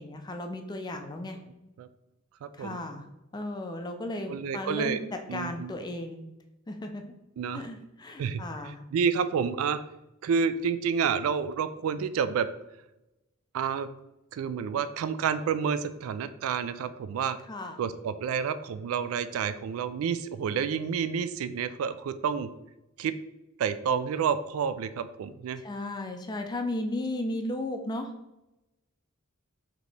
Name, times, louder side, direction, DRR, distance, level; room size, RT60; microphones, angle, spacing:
voice 1, 0.0-1.4 2.6-3.1 3.3-6.2 6.7-7.0 7.5-8.8 17.5-17.8 25.6-28.1, left 1 dB, 20° left, 5 dB, 0.4 m, -35 dB
voice 2, 2.4-2.8 4.3-5.0 5.3-5.7 7.4-7.6 8.2-8.4 8.9-9.8 10.2-12.5 13.5-13.9 14.3-17.4 17.8-22.5 23.0-23.2 23.6-25.6, right 6 dB, 85° right, 13 dB, 0.3 m, -29 dB
5.1 x 2.9 x 3.2 m, 0.95 s
head